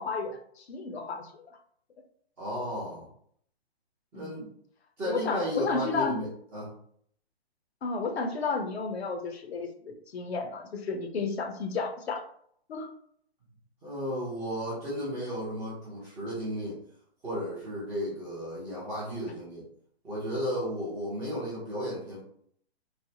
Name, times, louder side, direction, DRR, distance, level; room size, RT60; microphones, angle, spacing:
voice 1, 0.0-1.4 4.1-4.5 5.0-6.2 7.8-12.2 12.7-12.9, left 4 dB, 75° left, 5 dB, 0.7 m, -32 dB
voice 2, 2.4-3.1 4.1-4.4 5.0-6.3 6.5-6.7 13.8-16.8 17.2-19.6 20.0-22.2, equal, 10° right, -9 dB, 0.4 m, -34 dB
3.2 x 2.0 x 2.6 m, 0.64 s
hypercardioid pair, 140°, 32 cm